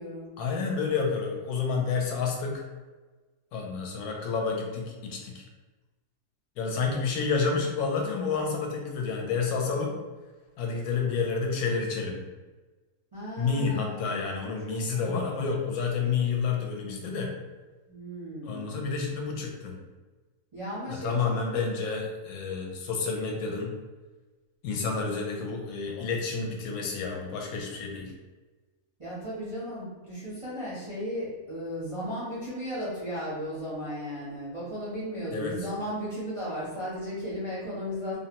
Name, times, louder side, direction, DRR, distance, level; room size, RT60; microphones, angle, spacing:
voice 1, 0.4-2.6 3.5-5.4 6.6-10.0 10.6-12.2 13.4-17.3 18.4-19.8 20.9-23.7 24.6-28.1 35.3-35.7, left 5 dB, 75° left, 1 dB, 1.0 m, -29 dB
voice 2, 13.1-14.3 14.7-15.2 17.9-18.7 20.5-21.2 21.5-21.6 29.0-38.2, equal, 40° right, -10 dB, 0.4 m, -35 dB
2.6 x 2.1 x 2.8 m, 1.3 s
omnidirectional pair, 1.6 m